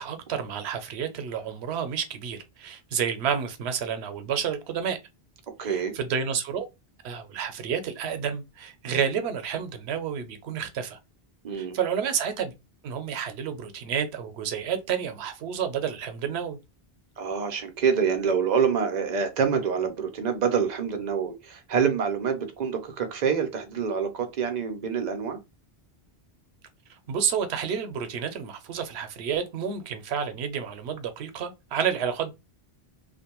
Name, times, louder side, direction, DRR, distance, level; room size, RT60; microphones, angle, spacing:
voice 1, 0.0-5.0 5.6-6.7 7.0-11.0 11.5-12.5 12.8-16.6 27.1-32.3, right 7 dB, 90° right, 0.8 m, -30 dB
voice 2, 5.6-5.9 11.4-11.8 17.2-25.4, right 6 dB, 50° right, 0.6 m, -26 dB
2.5 x 2.2 x 2.9 m
omnidirectional pair, 1.1 m